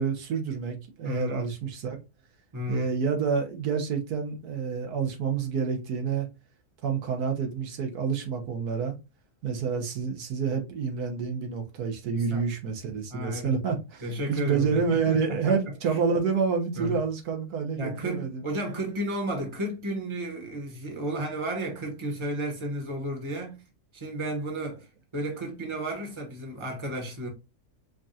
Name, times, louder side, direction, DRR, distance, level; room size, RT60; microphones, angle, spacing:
voice 1, 0.0-2.0 2.7-6.3 6.8-8.9 9.4-14.0 14.3-18.4, right 6 dB, 85° right, 1.4 m, -28 dB
voice 2, 1.0-1.5 2.5-2.9 12.1-12.4 13.1-13.6 14.0-16.0 16.8-17.0 17.7-23.6 23.9-24.9 25.1-27.3, right 1 dB, 20° right, 1.1 m, -33 dB
5.2 x 2.4 x 2.7 m
omnidirectional pair, 1.6 m